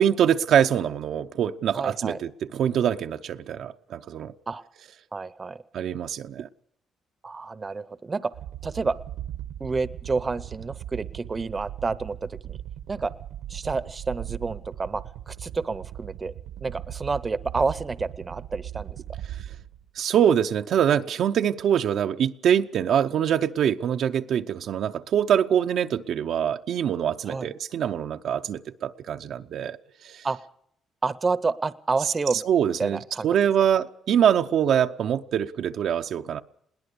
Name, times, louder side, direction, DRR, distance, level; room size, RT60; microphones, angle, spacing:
voice 1, 0.0-4.3 5.7-6.5 19.3-19.4 20.0-29.8 30.0-30.3 32.4-36.4, right 9 dB, 70° right, 0.7 m, -24 dB
voice 2, 1.7-2.2 4.5-4.6 5.1-5.6 7.2-8.3 8.6-9.0 9.6-12.6 12.9-13.1 13.5-16.3 16.6-19.0 27.3-27.5 30.2-30.4 31.0-32.4 32.8-33.3, right 4 dB, 30° right, 0.8 m, -29 dB
sound 1, 8.3-19.9, right 12 dB, 85° right, 1.2 m, -38 dB
21.0 x 18.0 x 6.9 m
cardioid pair, 90°, 0 cm